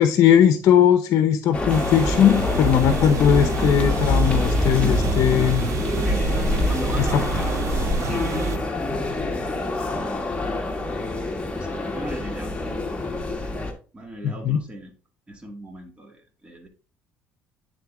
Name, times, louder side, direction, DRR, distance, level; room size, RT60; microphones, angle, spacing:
voice 1, 0.0-5.7 7.0-7.1 14.2-14.6, left 9 dB, 60° left, 9 dB, 0.7 m, -19 dB
sound 1, 1.5-13.7, left 2 dB, 20° left, 1.4 m, -26 dB
sound 2, 1.7-8.6, right 11 dB, 55° right, 0.4 m, -31 dB
sound 3, 2.2-9.1, left 2 dB, ahead, 2.0 m, -31 dB
voice 2, 5.9-10.3 11.2-11.3 11.6-12.6 13.4-13.6 13.9-14.9 15.3-16.7, right 1 dB, 20° right, 2 dB, 2.0 m, -38 dB
9.2 x 3.8 x 3.7 m, 0.36 s
supercardioid pair, 90°, 6 cm